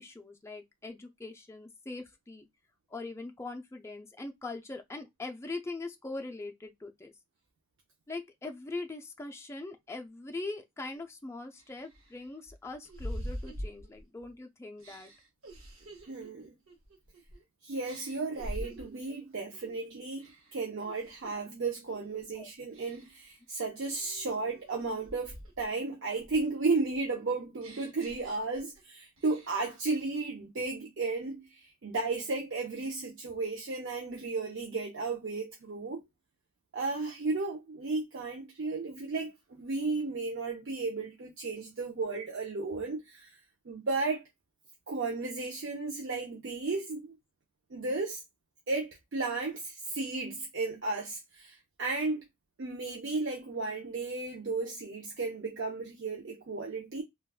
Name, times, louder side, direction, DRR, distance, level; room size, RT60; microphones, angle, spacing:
voice 1, 0.0-2.5 2.9-7.1 8.1-15.1 22.4-22.5 54.6-54.7, left 3 dB, 15° left, 0.3 m, -41 dB
sound 1, 10.9-11.0 11.6-14.3 14.8-17.4 17.8-19.1 19.5-19.8 20.2-21.5 21.9-22.2 22.7-23.3 23.8-25.7 26.1-28.8 29.2-29.8, equal, 80° right, 0.9 m, -45 dB
voice 2, 16.1-16.5 17.6-36.0 36.7-43.4 43.7-44.2 44.9-47.2 47.7-48.2 48.7-52.2 52.6-57.0, right 3 dB, 60° right, 0.5 m, -34 dB
3.4 x 2.3 x 2.3 m
head